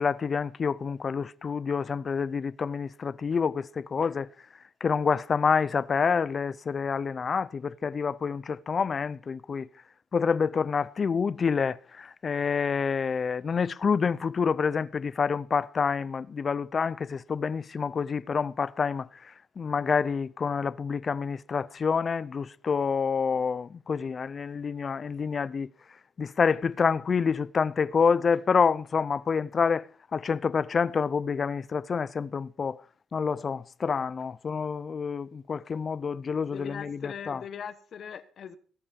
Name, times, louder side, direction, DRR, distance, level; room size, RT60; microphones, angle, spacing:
voice 1, 0.0-4.3 4.8-9.7 10.1-25.7 26.2-32.8 33.1-37.4, left 5 dB, 45° left, 0.6 m, -28 dB
voice 2, 36.5-38.6, left 7 dB, 60° left, 1.1 m, -40 dB
19.0 x 8.6 x 5.3 m
cardioid pair, 75°, 0 cm